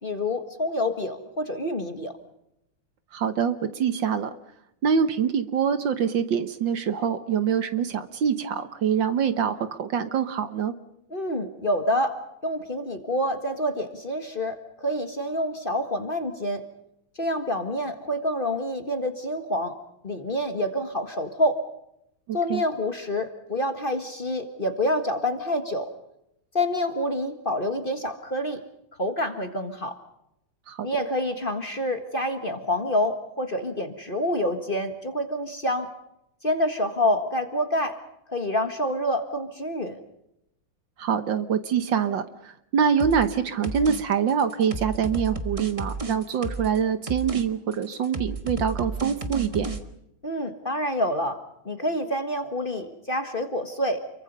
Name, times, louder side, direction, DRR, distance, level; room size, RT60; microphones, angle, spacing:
voice 1, 0.0-2.1 11.1-16.6 17.1-19.8 20.0-21.6 22.3-25.9 26.5-28.6 29.0-30.0 30.8-35.9 36.4-38.0 38.3-40.0 50.2-54.1, left 1 dB, 25° left, 6 dB, 1.7 m, -27 dB
voice 2, 3.1-4.4 4.8-10.7 22.3-22.6 30.7-30.9 41.0-49.7, right 7 dB, 65° right, 10 dB, 1.7 m, -25 dB
sound 1, 43.0-43.3 43.6-44.0 44.3-46.8 47.1-47.4 47.7-49.8, right 3 dB, 20° right, 1.1 m, -32 dB
29.0 x 23.5 x 5.5 m, 0.81 s
omnidirectional pair, 2.3 m